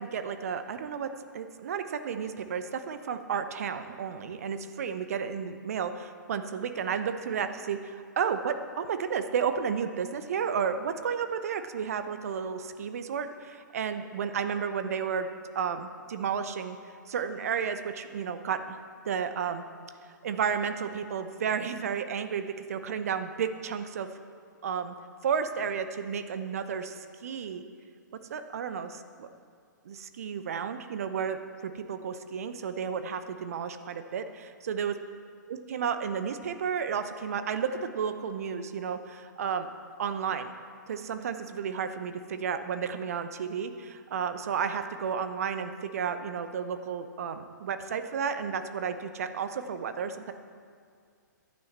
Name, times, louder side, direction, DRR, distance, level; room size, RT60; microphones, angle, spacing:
voice 1, 0.0-15.3 15.5-18.8 19.0-19.6 20.2-24.1 24.6-24.9 25.2-27.6 28.3-29.3 29.8-35.0 35.5-39.7 40.0-40.5 40.9-50.3, right 7 dB, 50° right, 9 dB, 0.9 m, -32 dB
15.5 x 11.0 x 4.2 m, 2.2 s
figure-of-eight pair, 120°, 10 cm